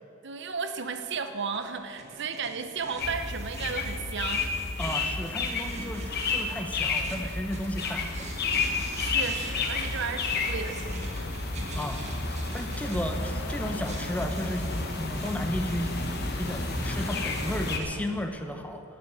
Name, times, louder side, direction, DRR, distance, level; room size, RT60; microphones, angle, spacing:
voice 1, 0.2-4.5 9.0-11.1, right 5 dB, 60° right, 8 dB, 0.9 m, -34 dB
sound 1, 0.8-18.0, right 2 dB, 35° right, 2.0 m, -44 dB
Engine starting, 2.7-3.1 3.8-4.1 4.4-5.0 5.4-6.0 6.3-6.5 6.9-18.3, equal, 90° left, 1.7 m, -52 dB
sound 2, 3.0-17.8, left 3 dB, 55° left, 1.2 m, -31 dB
voice 2, 4.8-8.3 11.7-12.0 12.5-14.7 14.9-15.9 16.4-18.8, equal, 5° left, 5 dB, 0.9 m, -33 dB
14.5 x 6.7 x 9.5 m, 2.8 s
head